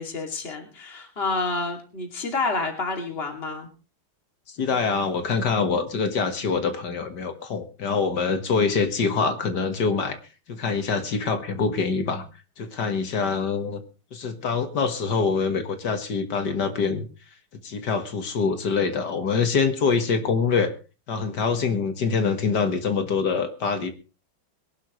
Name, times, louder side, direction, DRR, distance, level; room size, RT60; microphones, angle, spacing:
voice 1, 0.0-3.7, left 3 dB, 30° left, 3 dB, 2.7 m, -29 dB
voice 2, 4.6-10.2 10.5-12.3 12.6-13.8 14.1-17.1 17.6-20.7 21.1-23.9, left 5 dB, 55° left, 8 dB, 2.0 m, -25 dB
22.5 x 11.5 x 3.1 m, 0.32 s
omnidirectional pair, 2.2 m